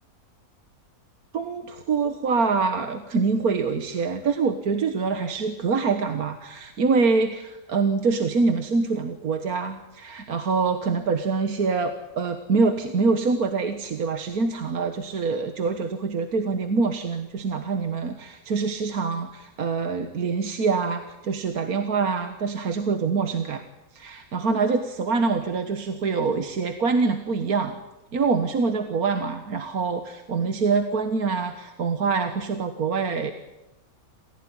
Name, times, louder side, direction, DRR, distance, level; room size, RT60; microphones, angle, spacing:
voice 1, 1.3-23.6 23.9-27.8 28.1-33.3, right 4 dB, 70° right, 7 dB, 1.9 m, -25 dB
27.5 x 16.0 x 9.8 m, 0.98 s
omnidirectional pair, 1.6 m